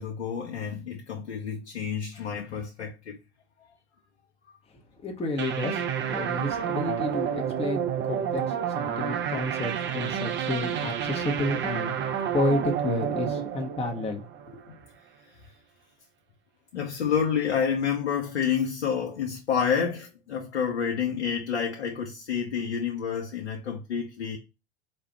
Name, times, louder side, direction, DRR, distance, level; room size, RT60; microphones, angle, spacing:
voice 1, 0.0-3.2 14.7-14.8 16.7-24.4, left 7 dB, 85° left, 0.8 m, -29 dB
voice 2, 5.0-14.7, left 2 dB, 20° left, 1.0 m, -31 dB
sound 1, 5.4-14.7, right 8 dB, 35° right, 0.7 m, -30 dB
4.2 x 2.4 x 4.4 m
hypercardioid pair, 80°, 33 cm